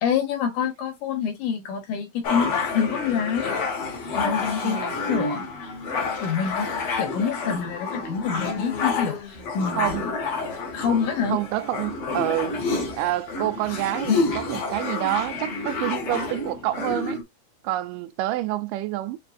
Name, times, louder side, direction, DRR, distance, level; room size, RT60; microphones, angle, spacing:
voice 1, 0.0-3.6 4.1-5.4 6.2-6.7 7.0-10.0 10.7-11.4, left 7 dB, 75° left, 2.7 m, -26 dB
sound 1, 2.2-17.2, left 4 dB, 55° left, 1.7 m, -29 dB
voice 2, 4.6-5.0 9.8-10.2 11.3-12.6 12.9-17.2 17.6-19.2, right 15 dB, 90° right, 2.2 m, -28 dB
7.2 x 2.4 x 2.5 m
omnidirectional pair, 3.8 m